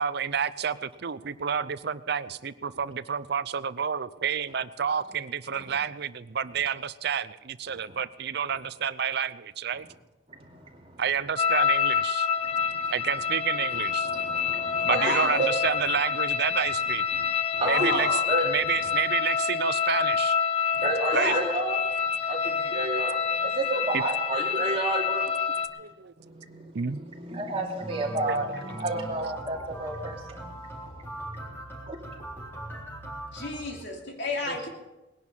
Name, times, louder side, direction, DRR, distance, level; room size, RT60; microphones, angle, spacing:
voice 1, 0.0-9.9 11.0-12.3 12.9-14.1 14.8-17.0 17.7-18.1 18.5-20.4 21.1-21.3 23.1-23.2 23.9-24.0 25.8-26.1 26.7-27.0 28.2-28.4, right 7 dB, 60° right, 16 dB, 0.6 m, -29 dB
voice 2, 10.3-11.0 12.4-12.9 13.7-15.5 17.1-17.3 17.5-18.0 18.3-18.5 20.7-21.8 22.3-25.3 26.2-30.5 30.9-31.3 31.9-32.1 34.5-34.6, right 2 dB, 30° right, -1 dB, 2.7 m, -32 dB
sound 1, 11.4-25.7, left 7 dB, 30° left, 1.1 m, -27 dB
voice 3, 14.9-15.5 17.6-18.2 21.1-21.4 33.3-34.7, left 2 dB, 65° left, 1 dB, 2.8 m, -30 dB
sound 2, 27.8-33.7, right 1 dB, 10° left, 3.8 m, -40 dB
20.0 x 11.0 x 5.5 m, 1.0 s
head